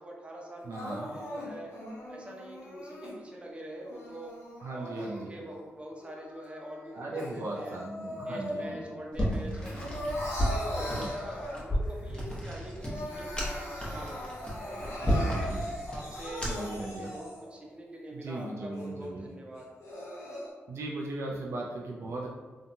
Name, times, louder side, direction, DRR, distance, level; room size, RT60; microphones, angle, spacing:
voice 1, 0.0-1.7 2.1-4.4 4.7-7.8 8.3-9.9 10.4-15.3 15.9-19.7 20.2-20.4, right 1 dB, 25° right, -2 dB, 0.7 m, -44 dB
voice 2, 0.6-1.1 4.6-5.4 6.9-8.8 10.9-11.1 15.0-15.9 16.4-17.1 18.1-19.3 20.7-22.3, right 2 dB, 70° right, -2 dB, 0.4 m, -38 dB
Crying sobbing, 0.7-3.1 3.8-5.6 6.0-8.9 9.2-11.9 12.3-12.4 12.7-17.6 18.1-18.2 18.7-18.8 19.6-20.5, left 1 dB, 80° left, 0.8 m, -39 dB
sound 1, 9.1-16.8, equal, 20° left, 0.9 m, -33 dB
2.8 x 2.2 x 2.6 m, 1.4 s
cardioid pair, 55°, 5 cm